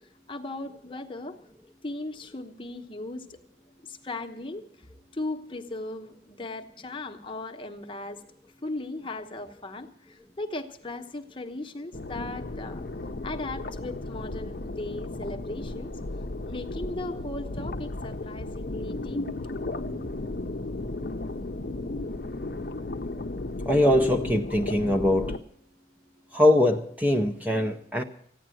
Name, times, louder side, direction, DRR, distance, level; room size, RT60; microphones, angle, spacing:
voice 1, 0.3-1.4 1.8-3.4 3.8-4.9 5.1-8.2 8.6-12.8 13.2-15.9 16.5-19.2 20.0-20.1, left 2 dB, 30° left, 1.0 m, -37 dB
sound 1, 11.9-25.4, left 2 dB, 55° left, 0.7 m, -34 dB
voice 2, 23.6-25.4 26.3-28.0, left 1 dB, 10° right, 0.6 m, -22 dB
15.0 x 10.0 x 7.7 m
head